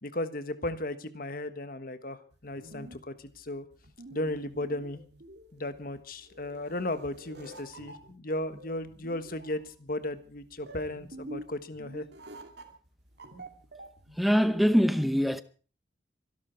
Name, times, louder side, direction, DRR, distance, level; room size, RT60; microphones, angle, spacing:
voice 1, 0.0-3.6 4.1-5.0 5.5-12.1, left 1 dB, 50° left, 1.4 m, -35 dB
sound 1, 2.3-14.8, right 1 dB, 60° right, 2.7 m, -48 dB
voice 2, 14.2-15.4, equal, ahead, 0.8 m, -23 dB
25.0 x 12.0 x 4.6 m
head